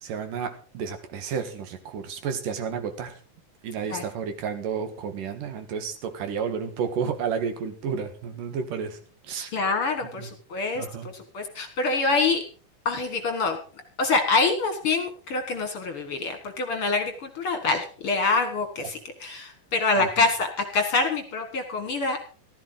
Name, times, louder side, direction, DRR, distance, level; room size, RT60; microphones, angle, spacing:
voice 1, 0.0-3.1 3.6-9.0 9.3-9.5 10.1-10.3 10.8-11.1 20.0-20.1, right 6 dB, 75° right, 8 dB, 3.2 m, -31 dB
voice 2, 9.5-10.9 11.1-12.4 12.9-13.6 14.0-20.5 20.7-22.2, left 3 dB, 50° left, 6 dB, 2.1 m, -25 dB
15.0 x 13.5 x 3.9 m, 0.40 s
omnidirectional pair, 3.8 m